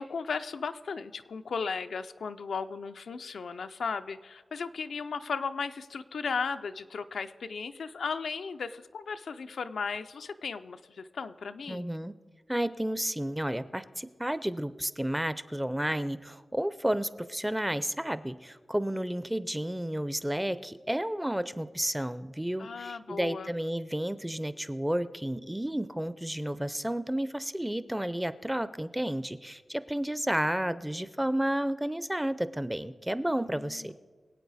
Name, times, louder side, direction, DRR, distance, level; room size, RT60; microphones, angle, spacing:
voice 1, 0.0-11.9 22.6-23.5 33.5-33.9, left 5 dB, 90° left, 9 dB, 0.5 m, -36 dB
voice 2, 11.7-12.1 12.5-33.9, right 1 dB, 5° right, 14 dB, 0.4 m, -31 dB
24.0 x 8.5 x 4.1 m, 1.5 s
wide cardioid pair, 130°, 0 cm